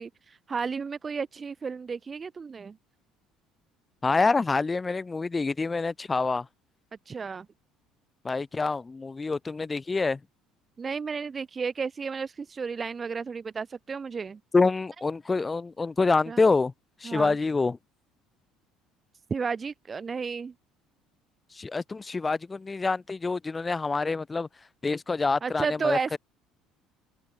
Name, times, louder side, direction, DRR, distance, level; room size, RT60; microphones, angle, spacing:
voice 1, 0.0-2.8 7.1-7.5 10.8-14.4 16.3-16.4 17.0-17.4 19.3-20.5 25.4-26.2, right 5 dB, 30° right, 0.5 m, -32 dB
voice 2, 4.0-6.5 8.2-10.2 14.5-16.7 17.0-17.8 21.5-24.5 24.8-26.2, left 3 dB, 20° left, 0.9 m, -26 dB
supercardioid pair, 100°, 0 cm